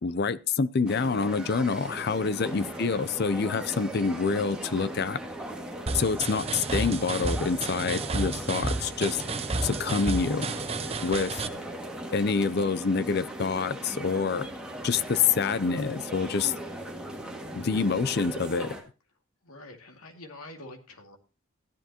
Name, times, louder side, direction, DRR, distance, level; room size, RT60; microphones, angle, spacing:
voice 1, 0.0-5.2 5.9-9.2 9.6-10.5 11.0-11.3 12.1-14.5 14.8-16.5 17.5-18.8, left 5 dB, 45° left, 0.5 m, -27 dB
sound 1, 0.9-18.8, right 1 dB, 5° right, 2.0 m, -39 dB
voice 2, 2.4-2.8 10.8-11.8 19.4-21.2, left 2 dB, 85° left, 2.3 m, -47 dB
sound 2, 5.9-11.5, right 3 dB, 25° right, 0.6 m, -32 dB
15.0 x 10.5 x 2.9 m
head